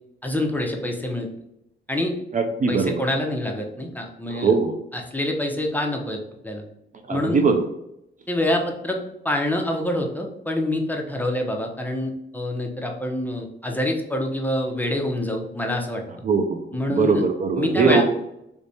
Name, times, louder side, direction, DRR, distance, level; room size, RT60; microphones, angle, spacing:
voice 1, 0.2-1.3 1.9-2.1 2.7-4.5 4.9-6.6 7.1-7.4 8.3-9.0 9.2-16.0 16.7-17.2 17.6-18.0, left 1 dB, 10° left, 2 dB, 0.6 m, -26 dB
voice 2, 2.3-3.0 4.3-4.8 7.1-7.6 16.2-16.6 16.9-18.0, right 4 dB, 40° right, 5 dB, 0.4 m, -21 dB
3.2 x 3.2 x 2.7 m, 0.81 s
cardioid pair, 95°, 20 cm